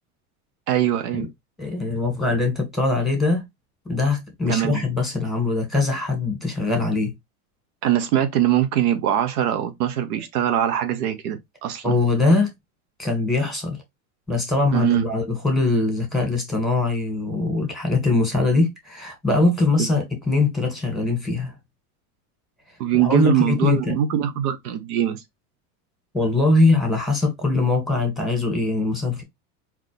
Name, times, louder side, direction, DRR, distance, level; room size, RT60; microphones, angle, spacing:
voice 1, 0.7-1.3 4.5-4.8 7.8-11.9 14.7-15.0 22.8-25.2, right 11 dB, 75° right, 0.9 m, -22 dB
voice 2, 1.6-3.4 3.9-7.1 11.8-12.5 13.0-13.8 14.3-21.5 22.9-24.0 26.1-29.2, left 3 dB, ahead, 2.0 m, -22 dB
3.9 x 3.0 x 3.3 m
supercardioid pair, 110°, 45 cm